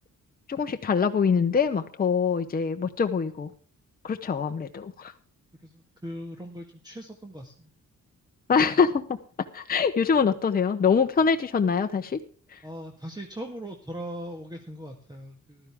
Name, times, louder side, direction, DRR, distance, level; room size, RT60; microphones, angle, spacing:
voice 1, 0.5-3.5 4.0-5.1 8.5-9.0 9.5-12.2 12.5-12.6, left 6 dB, 30° left, 6 dB, 0.9 m, -24 dB
voice 2, 5.5-7.7 12.6-15.7, equal, 15° right, 3 dB, 1.7 m, -40 dB
15.0 x 12.5 x 3.6 m, 0.42 s
cardioid pair, 120°, 30 cm